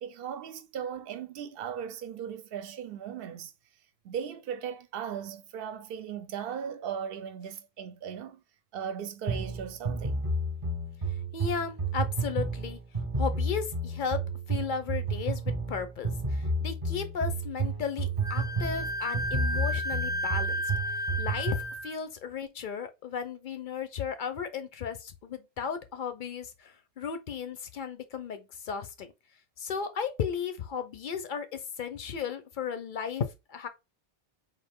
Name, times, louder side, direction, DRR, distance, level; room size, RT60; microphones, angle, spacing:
voice 1, 0.0-3.5 4.0-8.4 8.7-10.3, right 8 dB, 70° right, 0.7 m, -37 dB
sound 1, 9.3-21.7, right 2 dB, 35° right, 0.8 m, -31 dB
voice 2, 11.1-12.8 13.2-14.2 14.5-29.1 29.6-33.7, left 6 dB, 60° left, 0.6 m, -35 dB
Wind instrument woodwind instrument, 18.2-21.9, equal, 15° left, 0.4 m, -33 dB
3.6 x 2.5 x 3.5 m
omnidirectional pair, 1.1 m